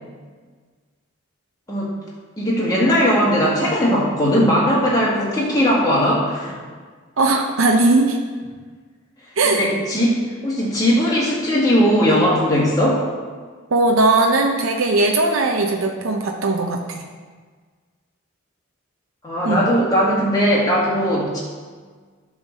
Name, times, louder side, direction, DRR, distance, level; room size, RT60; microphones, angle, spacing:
voice 1, 2.4-6.5 9.4-13.0 19.2-21.4, equal, 20° left, -6 dB, 1.8 m, -18 dB
voice 2, 7.2-8.2 9.4-9.7 13.7-17.0 19.4-19.6, right 2 dB, 80° right, 2 dB, 0.7 m, -18 dB
9.6 x 3.9 x 6.3 m, 1.5 s
head